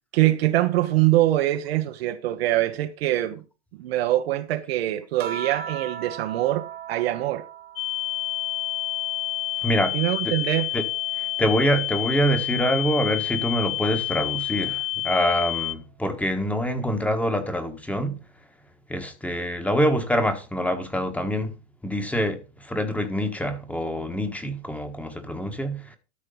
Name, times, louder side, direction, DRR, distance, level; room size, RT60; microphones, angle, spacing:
voice 1, 0.1-3.4 3.7-7.5 9.9-10.7, right 15 dB, 60° right, 1.1 m, -23 dB
sound 1, 5.2-10.0 10.5-12.2 13.4-13.9, right 7 dB, 25° right, 1.0 m, -40 dB
sound 2, 7.8-15.7, left 17 dB, 55° left, 0.6 m, -29 dB
voice 2, 9.6-10.0 10.2-10.3 10.7-10.8 11.2-18.2 18.9-21.5 21.8-26.0, equal, 5° left, 1.4 m, -25 dB
13.0 x 4.4 x 5.5 m
hypercardioid pair, 125°, 34 cm